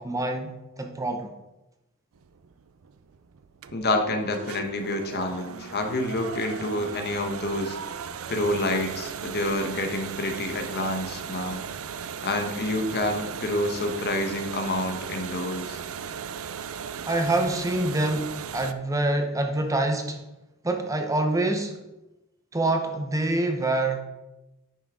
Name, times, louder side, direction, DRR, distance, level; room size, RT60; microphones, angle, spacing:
voice 1, 0.0-1.3 17.1-20.2 20.6-21.8 22.5-24.0, right 2 dB, 15° right, 5 dB, 0.7 m, -26 dB
sound 1, 2.2-18.7, right 7 dB, 65° right, 0.5 m, -37 dB
voice 2, 3.7-7.8 8.3-11.6 12.2-15.8, left 1 dB, 50° left, 5 dB, 1.0 m, -28 dB
9.7 x 6.2 x 3.6 m, 0.96 s
head